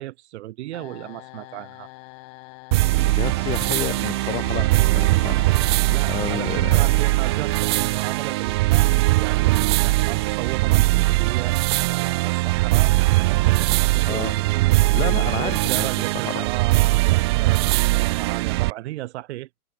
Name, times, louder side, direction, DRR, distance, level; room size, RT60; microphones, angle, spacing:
voice 1, 0.0-1.9 5.9-17.6 17.9-19.6, right 16 dB, 45° right, 2.3 m, -35 dB
sound 1, 0.7-9.6, left 33 dB, 35° left, 3.8 m, -45 dB
sound 2, 2.7-18.7, right 21 dB, 20° right, 0.5 m, -20 dB
voice 2, 3.0-6.9 14.1-14.3 14.9-16.4, left 13 dB, 10° left, 0.8 m, -31 dB
hypercardioid pair, 135°, 47 cm